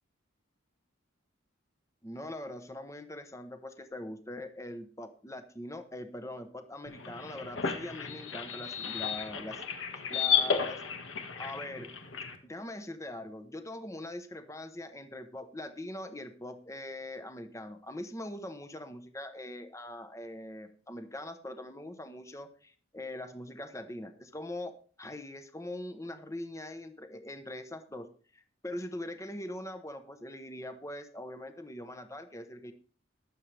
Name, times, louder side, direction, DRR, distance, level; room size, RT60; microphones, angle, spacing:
voice 1, 2.0-9.6 9.9-11.0 11.3-11.9 12.4-28.1 28.3-32.7, left 1 dB, 15° left, 8 dB, 0.9 m, -42 dB
sound 1, 6.9-12.4, left 7 dB, 75° left, 1.7 m, -33 dB
22.0 x 7.5 x 3.4 m, 0.41 s
head